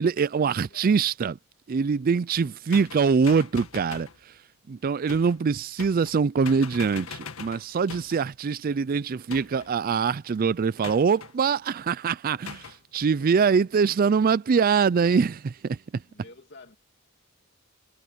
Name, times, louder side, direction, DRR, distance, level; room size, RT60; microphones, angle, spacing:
voice 1, 0.0-1.3 1.7-4.1 4.7-15.8, right 5 dB, 45° right, 0.4 m, -23 dB
voice 2, 0.7-1.0 13.2-13.7 16.1-16.8, left 3 dB, 55° left, 2.9 m, -50 dB
sound 1, 2.7-4.2 5.1-5.4 5.8-6.2 6.4-8.2 9.3-9.8 10.8-11.3 12.5-12.8, left 6 dB, 80° left, 1.8 m, -41 dB
head